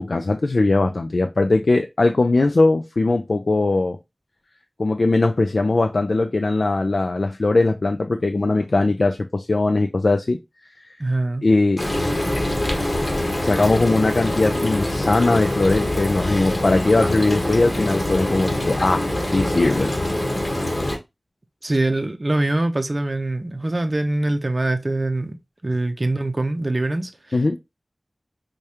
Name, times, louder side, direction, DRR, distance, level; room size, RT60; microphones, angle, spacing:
voice 1, 0.0-4.0 4.8-10.4 11.4-11.9 13.4-19.9 27.3-27.6, left 2 dB, 85° left, 0.3 m, -20 dB
voice 2, 11.0-11.5 21.6-27.6, right 2 dB, 50° right, 0.5 m, -24 dB
Frying (food), 11.8-21.0, left 1 dB, 40° left, 1.2 m, -24 dB
4.7 x 2.2 x 2.8 m
wide cardioid pair, 55°, 0 cm